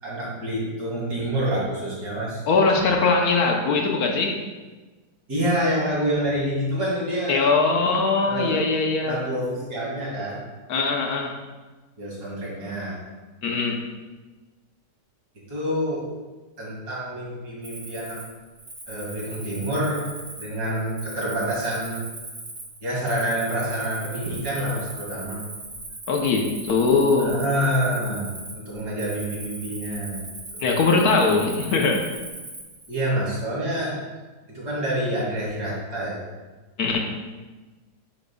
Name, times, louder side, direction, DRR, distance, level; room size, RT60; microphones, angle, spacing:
voice 1, 0.0-2.4 5.3-7.4 8.2-8.6 9.0-10.4 12.0-13.0 15.5-16.0 16.6-18.2 18.9-20.0 20.4-22.0 22.8-25.4 27.2-28.3 28.5-30.2 32.9-34.0 34.5-36.2, right 1 dB, 70° right, -6 dB, 2.7 m, -27 dB
voice 2, 2.5-4.4 7.3-9.2 10.7-11.3 13.4-13.9 26.1-27.4 30.6-32.1 36.8-37.0, left 4 dB, 70° left, 1 dB, 1.2 m, -21 dB
Cricket, 17.6-33.0, right 2 dB, 40° right, 1.7 m, -39 dB
9.2 x 4.9 x 2.3 m, 1.3 s
omnidirectional pair, 1.8 m